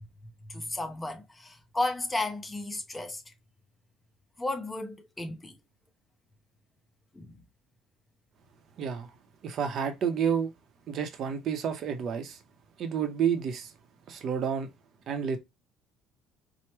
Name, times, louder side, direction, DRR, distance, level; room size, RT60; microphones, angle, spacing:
voice 1, 0.5-3.2 4.4-5.6 7.1-7.4, left 2 dB, 10° left, 0.6 m, -33 dB
voice 2, 8.8-9.1 9.4-10.5 10.9-12.4 12.8-13.7 14.1-14.7 15.1-15.4, right 7 dB, 45° right, 0.7 m, -30 dB
4.6 x 2.1 x 3.0 m
cardioid pair, 155°, 0 cm